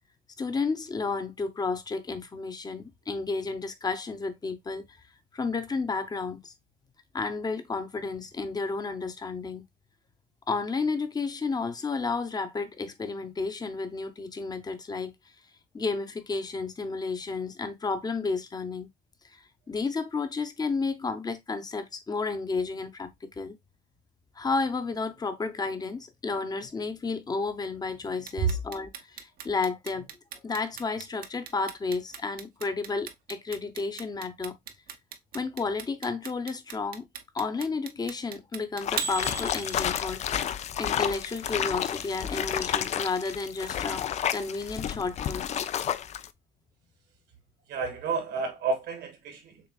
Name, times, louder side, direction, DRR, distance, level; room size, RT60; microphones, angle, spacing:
voice 1, 0.4-4.8 5.3-6.5 7.1-9.6 10.5-15.1 15.7-18.9 19.2-23.6 24.3-30.1 30.4-34.6 35.3-37.1 37.3-40.2 40.8-44.0 44.3-45.5, left 4 dB, 25° left, 0.8 m, -32 dB
Clock, 28.3-40.2, right 7 dB, 60° right, 0.7 m, -37 dB
sound 1, 38.8-46.3, left 9 dB, 40° left, 0.4 m, -31 dB
voice 2, 47.7-49.6, right 5 dB, 75° right, 1.5 m, -30 dB
6.7 x 2.4 x 2.3 m
cardioid pair, 110°, 17 cm